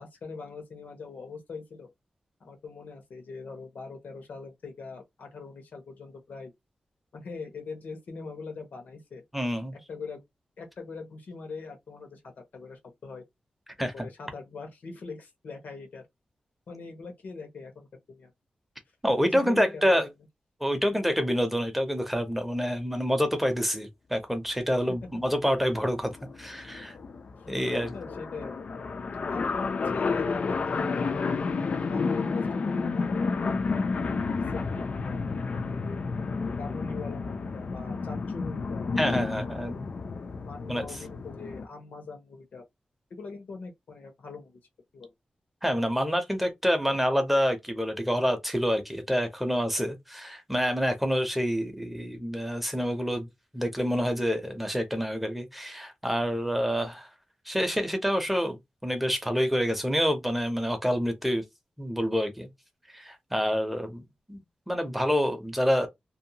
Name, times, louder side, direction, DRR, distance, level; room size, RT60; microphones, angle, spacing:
voice 1, 0.0-1.9 2.4-6.5 7.1-9.2 9.9-10.2 10.6-13.2 13.9-16.1 16.7-18.3 19.2-20.0 27.9-28.5 29.3-36.0 36.6-38.9 39.5-39.9 40.3-42.6 43.1-44.6 44.9-45.1, left 4 dB, 85° left, 1.0 m, -42 dB
voice 2, 9.3-9.7 13.8-14.1 19.0-20.1 20.6-26.1 26.4-27.0 27.5-27.9 39.0-39.8 40.7-40.8 45.6-53.3 53.5-57.1 57.5-58.6 58.8-61.4 61.8-62.5 62.9-64.0 64.3-64.4 64.7-65.9, equal, 5° right, 0.6 m, -27 dB
sound 1, 25.1-25.3 25.6-25.7 25.8-41.7, left 4 dB, 50° left, 0.4 m, -31 dB
2.7 x 2.2 x 2.7 m
wide cardioid pair, 170°, 3 cm